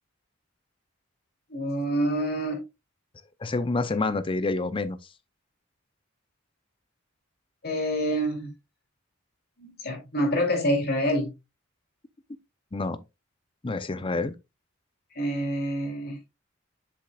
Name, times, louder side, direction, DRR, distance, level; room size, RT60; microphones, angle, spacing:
voice 1, 1.5-2.6 7.6-8.5 9.6-11.3 15.1-16.2, equal, 50° left, 2.8 m, -27 dB
voice 2, 3.4-5.0 12.7-13.0 13.6-14.3, left 3 dB, 25° left, 0.5 m, -28 dB
7.5 x 7.1 x 2.3 m
head